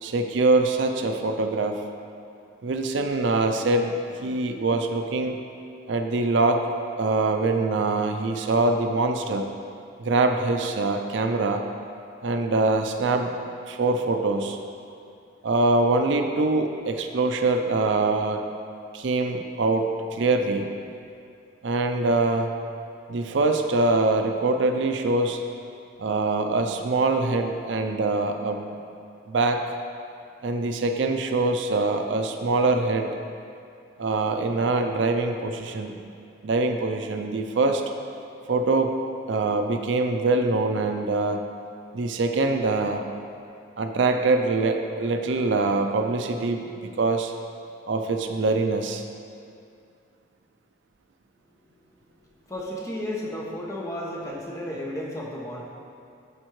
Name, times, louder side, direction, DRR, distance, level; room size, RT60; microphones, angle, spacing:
voice 1, 0.0-1.8 2.6-3.9 4.2-5.4 5.9-6.6 7.0-9.5 10.0-11.7 12.2-13.3 13.7-14.6 15.4-18.5 18.9-20.7 21.6-22.5 23.1-25.4 26.0-28.8 29.3-29.7 30.4-33.1 34.0-36.0 36.4-37.8 38.5-38.9 39.3-41.4 41.9-43.0 43.8-47.3 47.9-49.0, right 3 dB, 70° right, 5 dB, 0.4 m, -24 dB
voice 2, 52.5-55.6, left 1 dB, 15° left, -3 dB, 0.9 m, -33 dB
12.0 x 4.3 x 3.1 m, 2.5 s
head